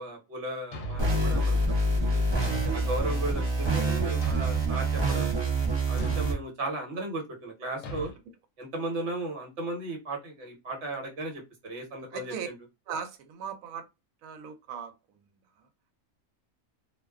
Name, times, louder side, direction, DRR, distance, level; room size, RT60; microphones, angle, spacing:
voice 1, 0.0-1.6 2.0-2.2 2.7-5.3 5.9-8.1 8.6-12.5, right 2 dB, 55° right, 1.1 m, -36 dB
Thump thud, 0.7-1.3 2.4-3.0 4.2-4.8 6.0-6.4 7.8-8.2, right 1 dB, 70° left, 0.9 m, -37 dB
sound 1, 1.0-6.3, right 2 dB, 40° right, 0.4 m, -26 dB
voice 2, 2.5-2.9 8.0-8.1 12.1-12.5 12.9-13.8 14.2-14.9 15.2-15.3 15.6-15.7, right 7 dB, 75° right, 1.0 m, -38 dB
2.4 x 2.2 x 2.3 m
omnidirectional pair, 1.5 m